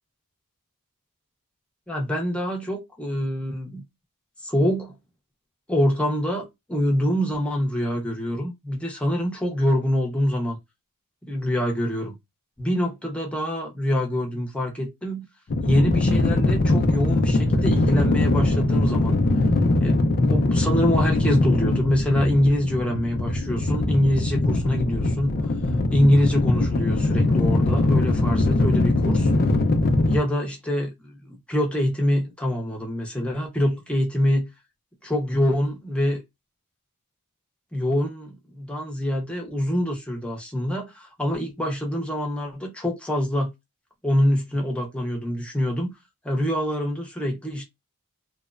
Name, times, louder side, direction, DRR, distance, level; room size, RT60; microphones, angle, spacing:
voice 1, 1.9-3.8 4.4-5.0 5.7-10.6 11.2-12.2 12.6-15.3 15.6-19.1 19.8-25.3 25.9-29.3 30.1-34.5 35.0-36.2 37.7-43.5 44.0-45.9 46.2-47.7, equal, 5° left, 0.7 m, -25 dB
sound 1, 15.5-30.2, left 2 dB, 45° left, 0.4 m, -21 dB
2.9 x 2.1 x 2.4 m
head